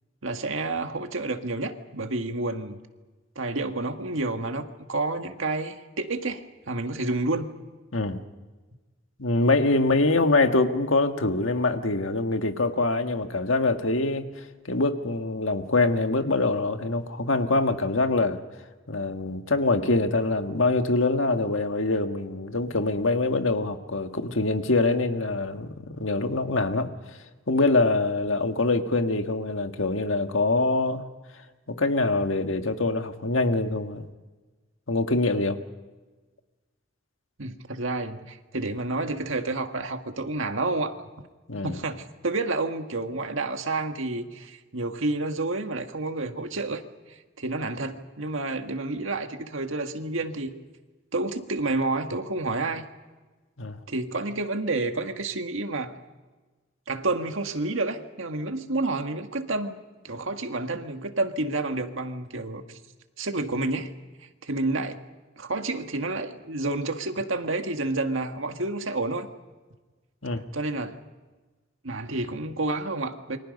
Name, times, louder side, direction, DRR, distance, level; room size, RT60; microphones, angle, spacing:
voice 1, 0.2-2.8 3.3-7.5 37.4-41.3 41.6-50.5 51.1-52.8 53.9-55.9 56.9-59.8 60.0-62.8 63.2-63.9 64.4-65.0 65.4-69.3 70.5-70.9 71.8-73.4, right 2 dB, 70° right, 6 dB, 1.8 m, -29 dB
voice 2, 9.2-18.4 18.9-26.9 27.5-31.0 31.7-34.1 34.9-35.6 41.5-41.8 53.6-53.8 70.2-70.4, left 2 dB, 75° left, 6 dB, 1.7 m, -24 dB
28.5 x 24.5 x 5.4 m, 1.3 s
head